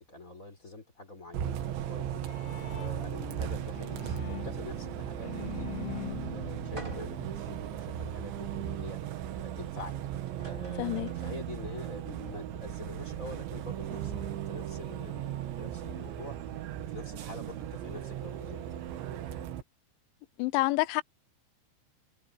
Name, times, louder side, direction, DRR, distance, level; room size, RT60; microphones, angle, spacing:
voice 1, 0.0-5.7 6.3-18.7, left 2 dB, 20° left, 3.7 m, -46 dB
Bus, 1.3-19.6, right 10 dB, 80° right, 3.9 m, -37 dB
Bowed string instrument, 2.2-8.0, left 17 dB, 70° left, 3.0 m, -44 dB
sound 1, 6.8-7.4 8.0-8.1 9.9-10.0 10.3-11.5, right 2 dB, 10° right, 4.4 m, -47 dB
voice 2, 10.8-11.1 20.4-21.0, left 21 dB, 90° left, 3.1 m, -28 dB
omnidirectional pair, 5.3 m